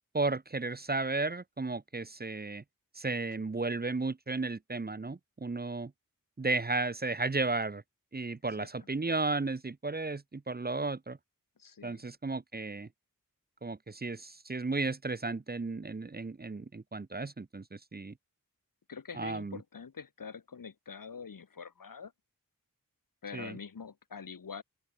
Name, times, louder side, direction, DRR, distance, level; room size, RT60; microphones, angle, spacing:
voice 1, 0.1-2.6 2.9-5.9 6.4-7.8 8.1-11.2 11.8-12.9 13.6-18.1 19.1-19.6 23.3-23.6, right 3 dB, 30° right, 0.7 m, -34 dB
voice 2, 11.6-12.0 18.9-22.1 23.2-24.6, left 6 dB, 75° left, 1.4 m, -45 dB
open air
wide cardioid pair, 60°, 34 cm